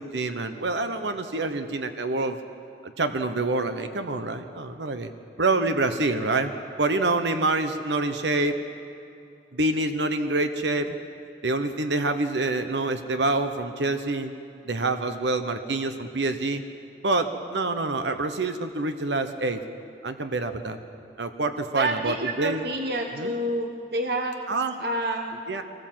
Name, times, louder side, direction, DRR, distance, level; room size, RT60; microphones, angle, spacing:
voice 1, 0.0-2.4 3.0-5.1 5.4-6.5 6.8-8.6 9.5-10.9 11.4-14.3 14.6-16.6 17.0-19.6 20.0-20.8 21.2-22.6 23.1-23.3 24.5-24.7 25.5-25.6, right 2 dB, 80° right, 8 dB, 1.1 m, -26 dB
voice 2, 21.7-24.4 24.8-25.4, right 1 dB, 60° right, 3 dB, 1.3 m, -28 dB
24.0 x 19.5 x 7.6 m, 2.6 s
head